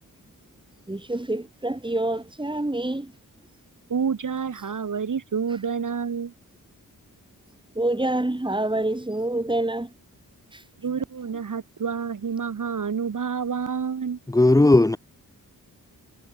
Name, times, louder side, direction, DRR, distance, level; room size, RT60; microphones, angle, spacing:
voice 1, 0.9-3.1 7.7-9.9 10.5-10.6, right 1 dB, 15° right, 5.2 m, -27 dB
voice 2, 3.9-6.3 10.8-14.2, right 6 dB, 60° right, 3.4 m, -28 dB
voice 3, 14.3-15.0, left 2 dB, 10° left, 0.8 m, -16 dB
wide cardioid pair, 85°, 35 cm